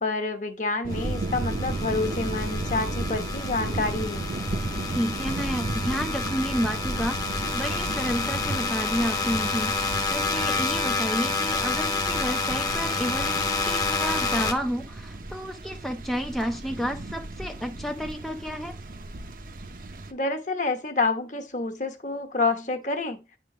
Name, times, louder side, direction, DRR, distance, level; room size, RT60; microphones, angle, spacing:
voice 1, 0.0-4.2 20.1-23.2, left 3 dB, 45° left, 1.2 m, -28 dB
sound 1, 0.8-20.1, right 2 dB, 50° right, 0.9 m, -34 dB
sound 2, 0.9-14.5, left 4 dB, 20° left, 0.9 m, -29 dB
voice 2, 4.9-18.8, equal, ahead, 0.5 m, -31 dB
9.6 x 3.8 x 4.9 m
head